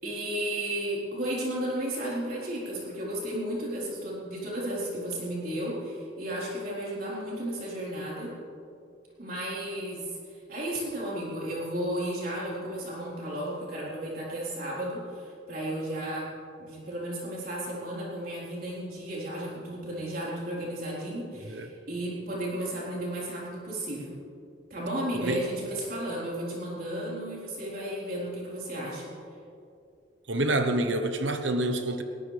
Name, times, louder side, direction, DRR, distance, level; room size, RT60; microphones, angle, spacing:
voice 1, 0.0-8.3 9.2-16.3 16.6-24.1 24.7-29.1, right 1 dB, 55° right, -6 dB, 4.1 m, -34 dB
voice 2, 30.3-32.0, right 2 dB, 90° right, 7 dB, 1.0 m, -27 dB
20.5 x 18.5 x 3.4 m, 2.5 s
head